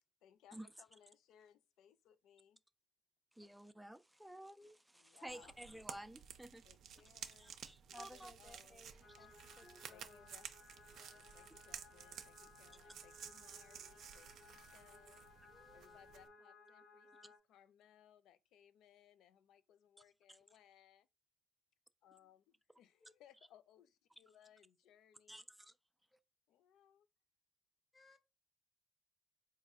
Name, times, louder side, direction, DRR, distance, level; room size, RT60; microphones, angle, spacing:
voice 1, 0.2-2.6 3.4-3.5 4.9-5.6 6.6-7.6 7.9-8.9 9.9-10.5 10.9-15.2 15.7-21.1 22.0-22.4 22.8-25.5 26.5-27.1, left 10 dB, 85° left, 0.4 m, -66 dB
voice 2, 3.4-6.6 7.4-8.3 9.6-9.8 20.3-20.4 25.3-25.7, right 1 dB, 5° right, 0.3 m, -53 dB
sound 1, 5.3-16.3, right 8 dB, 70° right, 0.5 m, -54 dB
voice 3, 7.9-10.2 15.5-16.0 23.0-23.1 27.9-28.2, left 1 dB, 25° left, 0.7 m, -61 dB
sound 2, 9.0-17.4, left 4 dB, 50° left, 1.4 m, -62 dB
4.0 x 2.5 x 3.6 m
cardioid pair, 90°, 0 cm